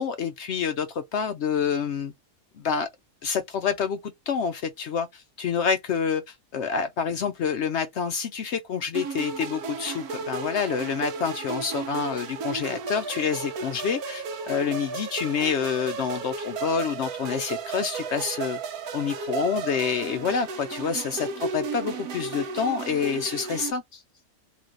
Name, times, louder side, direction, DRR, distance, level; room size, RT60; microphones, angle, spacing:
voice 1, 0.0-2.1 2.6-2.9 3.2-18.6 18.9-24.0, left 6 dB, 65° left, 0.7 m, -28 dB
sound 1, 8.9-23.7, right 4 dB, 80° right, 1.2 m, -34 dB
3.1 x 3.1 x 3.8 m
omnidirectional pair, 1.5 m